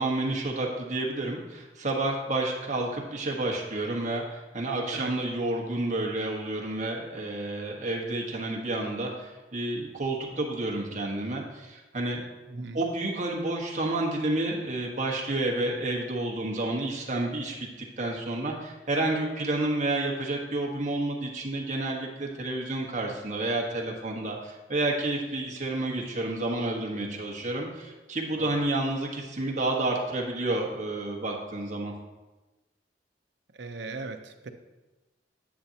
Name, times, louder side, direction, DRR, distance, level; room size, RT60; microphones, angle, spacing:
voice 1, 0.0-12.2 12.5-31.9, right 2 dB, 40° right, -1 dB, 1.5 m, -30 dB
voice 2, 33.6-34.5, right 3 dB, 70° right, 6 dB, 0.8 m, -38 dB
10.0 x 8.9 x 2.9 m, 1.1 s
head